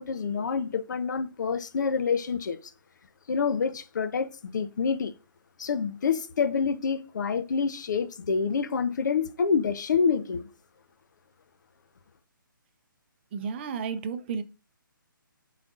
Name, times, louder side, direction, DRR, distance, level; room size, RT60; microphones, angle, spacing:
voice 1, 0.0-2.6 3.3-5.1 5.6-10.5, left 5 dB, 55° left, 0.7 m, -27 dB
voice 2, 13.3-14.4, right 6 dB, 30° right, 0.7 m, -32 dB
11.5 x 4.2 x 2.4 m
figure-of-eight pair, 145°, 11 cm